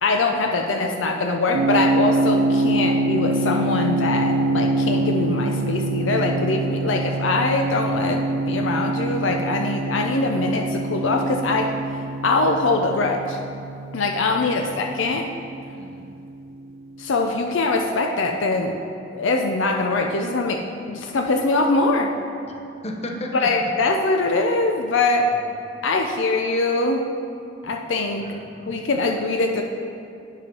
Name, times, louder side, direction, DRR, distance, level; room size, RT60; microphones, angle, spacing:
voice 1, 0.0-11.7 12.2-13.4 13.9-15.3 17.0-18.8 19.1-20.6 20.9-22.1 23.4-25.3 25.8-27.1 27.6-28.3 28.7-29.6, left 3 dB, 70° left, 3 dB, 0.6 m, -22 dB
sound 1, 1.5-16.3, right 2 dB, 85° right, 0.3 m, -25 dB
voice 2, 14.3-14.8 15.8-16.1 22.5-22.6 22.8-23.5 28.2-28.7, left 1 dB, 35° left, 1 dB, 0.8 m, -35 dB
8.6 x 5.5 x 5.3 m, 2.5 s
head